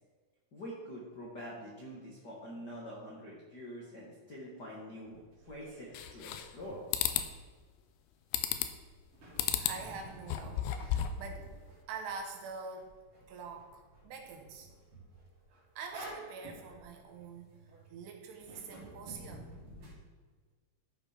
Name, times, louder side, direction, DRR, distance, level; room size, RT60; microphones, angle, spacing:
voice 1, 0.5-6.8, equal, 65° left, -5 dB, 1.0 m, -46 dB
sound 1, 5.0-7.6 9.1-17.9 18.3-19.9, right 1 dB, 40° right, 2.3 m, -51 dB
sound 2, 5.9-6.6 6.9-7.3 8.3-8.8 9.4-9.8 10.2-11.2, left 11 dB, 85° left, 2.5 m, -32 dB
voice 2, 9.5-11.5 11.9-12.9 13.3-14.7 15.8-19.5, right 5 dB, 85° right, 3 dB, 3.3 m, -45 dB
13.0 x 5.5 x 5.0 m, 1.4 s
omnidirectional pair, 4.8 m